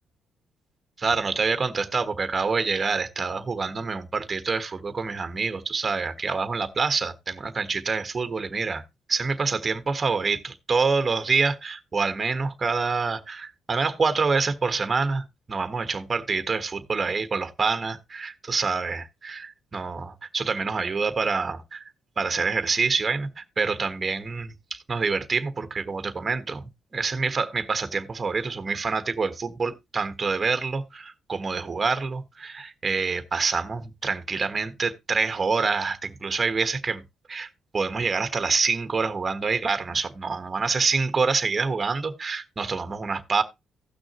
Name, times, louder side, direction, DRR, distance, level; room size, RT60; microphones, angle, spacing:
voice 1, 1.0-8.8 9.1-21.8 22.2-37.0 37.3-37.5 37.7-43.4, right 4 dB, 30° right, 1.3 m, -26 dB
16.0 x 6.2 x 2.9 m
cardioid pair, 90°, 0 cm